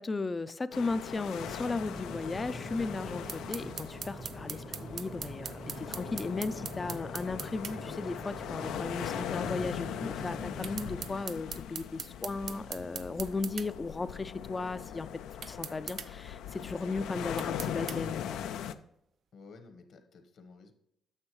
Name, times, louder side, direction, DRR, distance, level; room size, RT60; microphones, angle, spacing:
voice 1, 0.0-4.6 4.9-15.1 15.5-18.4, left 3 dB, 25° left, 14 dB, 0.4 m, -36 dB
sound 1, 0.7-18.7, left 9 dB, 85° left, 0.4 m, -40 dB
sound 2, 1.4-11.1, right 2 dB, 25° right, 0.8 m, -45 dB
sound 3, 3.3-7.8 10.6-13.7 15.4-16.1 17.4-18.0, right 7 dB, 65° right, 0.5 m, -40 dB
voice 2, 4.6-4.9 12.1-12.2 19.3-20.7, left 4 dB, 65° left, 7 dB, 1.3 m, -54 dB
9.7 x 6.7 x 3.1 m, 0.77 s
cardioid pair, 90°, 0 cm